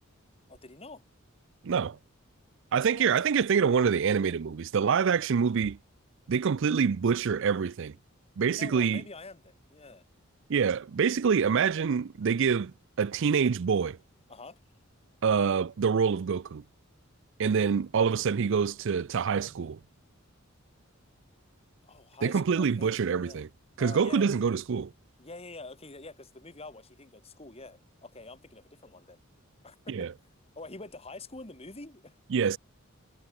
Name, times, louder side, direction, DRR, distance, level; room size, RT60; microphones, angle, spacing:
voice 1, 0.5-1.0 2.8-3.1 8.4-10.1 14.3-14.6 21.8-23.4 23.8-24.4 25.2-29.2 29.6-30.1 30.6-32.2, left 3 dB, 30° left, 2.8 m, -46 dB
voice 2, 1.6-2.0 2.7-5.8 6.3-7.9 8.4-9.0 10.5-14.0 15.2-16.6 17.4-19.8 22.2-23.5 23.8-24.9 29.9-30.1 32.3-32.6, right 6 dB, 60° right, 0.4 m, -26 dB
head